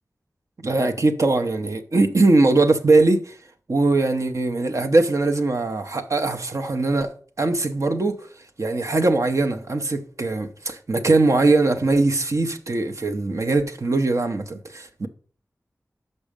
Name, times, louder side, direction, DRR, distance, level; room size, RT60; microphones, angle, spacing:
voice 1, 0.6-3.4 3.7-8.3 8.6-15.1, right 2 dB, 60° right, 0.7 m, -21 dB
6.2 x 5.4 x 5.0 m
wide cardioid pair, 60°, 6 cm